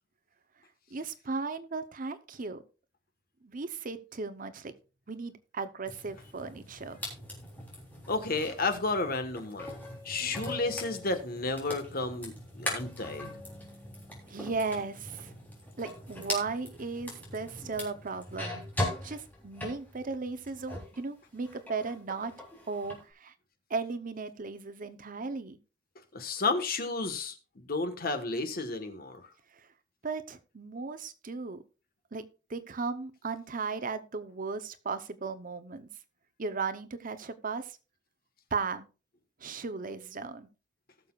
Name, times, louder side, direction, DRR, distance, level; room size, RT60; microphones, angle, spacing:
voice 1, 0.9-2.6 3.4-4.7 5.1-7.0 14.3-15.3 15.8-18.6 19.0-22.3 22.7-23.3 23.7-25.6 30.0-31.6 32.1-32.2 32.5-35.9 36.4-37.8 38.5-38.9 39.4-40.5, right 4 dB, 45° right, 0.8 m, -36 dB
sound 1, 5.9-21.0 21.3-23.0, left 1 dB, 10° left, 3.5 m, -41 dB
voice 2, 8.1-9.7 10.0-13.3 26.1-29.3, left 3 dB, 50° left, 1.4 m, -32 dB
19.0 x 6.8 x 2.4 m
head